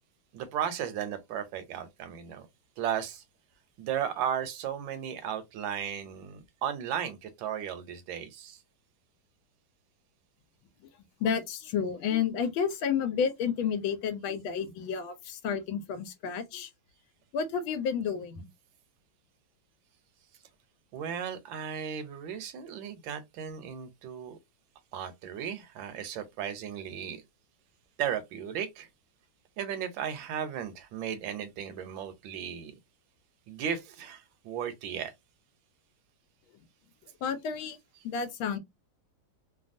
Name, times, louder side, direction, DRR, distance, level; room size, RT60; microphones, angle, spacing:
voice 1, 0.3-2.5 2.8-3.2 3.8-8.6 20.9-24.4 24.9-27.2 28.0-28.9 29.6-32.7 33.5-35.1, right 9 dB, 80° right, 1.3 m, -35 dB
voice 2, 11.2-16.7 17.3-18.5 37.2-37.8 38.0-38.6, left 7 dB, 90° left, 1.4 m, -31 dB
3.4 x 2.2 x 2.5 m
omnidirectional pair, 2.2 m